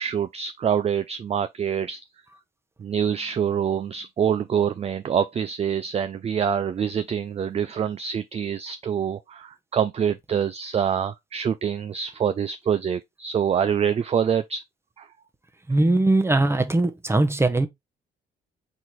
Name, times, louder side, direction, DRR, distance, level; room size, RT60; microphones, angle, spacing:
voice 1, 0.0-2.0 2.8-14.6 15.0-15.1, right 8 dB, 30° right, 0.4 m, -25 dB
voice 2, 15.7-17.7, right 2 dB, 10° right, 0.9 m, -20 dB
4.5 x 3.8 x 3.1 m
cardioid pair, 90°, 20 cm